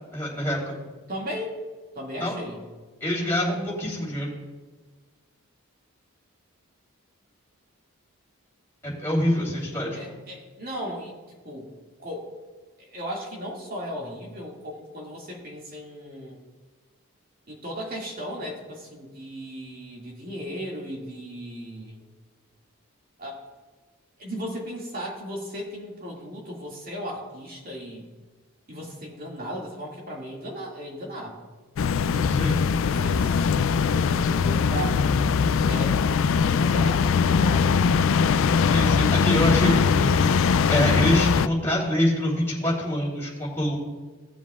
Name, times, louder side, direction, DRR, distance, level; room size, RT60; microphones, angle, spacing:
voice 1, 0.1-0.8 2.2-2.3 3.0-4.3 8.8-10.2 32.3-32.7 38.7-43.8, equal, 10° left, -6 dB, 3.2 m, -25 dB
voice 2, 1.1-1.6 2.0-2.6 9.9-11.1 11.4-11.7 12.0-12.3 12.8-16.4 17.5-22.0 23.2-23.4 24.2-28.1 28.7-31.4 32.7-35.4 35.7-36.2 36.5-38.3, equal, 40° right, -2 dB, 2.1 m, -36 dB
sound 1, 31.8-41.5, left 6 dB, 65° left, 0.3 m, -21 dB
17.5 x 7.3 x 2.4 m, 1.3 s
head